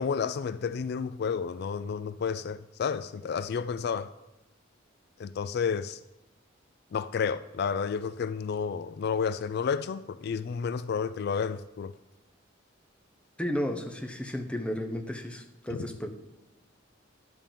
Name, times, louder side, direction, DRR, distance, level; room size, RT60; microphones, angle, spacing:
voice 1, 0.0-4.1 5.2-6.0 6.9-11.9 15.7-15.9, left 6 dB, 55° left, 0.3 m, -31 dB
voice 2, 13.4-16.1, equal, 5° left, 0.9 m, -33 dB
11.0 x 5.3 x 7.3 m
head